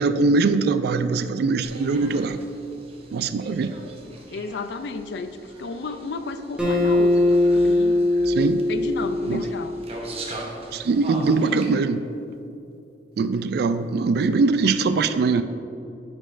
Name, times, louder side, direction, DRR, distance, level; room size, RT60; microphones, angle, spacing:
voice 1, 0.0-2.4 3.1-3.7 8.3-8.6 9.3-9.4 10.7-12.0 13.2-15.4, right 4 dB, 60° right, 11 dB, 0.3 m, -22 dB
sound 1, 1.6-11.7, right 2 dB, 35° right, 0.8 m, -41 dB
voice 2, 4.3-8.1 8.7-9.8, left 3 dB, 70° left, 10 dB, 0.4 m, -32 dB
Acoustic guitar, 6.6-10.0, left 2 dB, 5° right, 1.0 m, -21 dB
9.7 x 5.1 x 2.5 m, 2.7 s
head